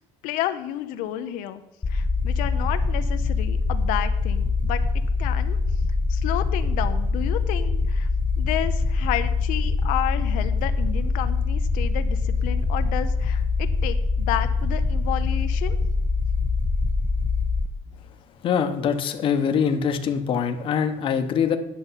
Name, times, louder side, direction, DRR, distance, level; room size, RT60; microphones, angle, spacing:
voice 1, 0.2-1.6 1.9-4.8 5.2-5.6 6.1-8.1 8.4-15.8, left 13 dB, 90° left, 9 dB, 0.7 m, -31 dB
sound 1, 1.8-17.7, left 4 dB, 15° left, 0.4 m, -24 dB
voice 2, 18.4-21.6, left 7 dB, 40° left, 7 dB, 0.8 m, -23 dB
10.0 x 6.8 x 5.6 m, 0.88 s
cardioid pair, 170°, 14 cm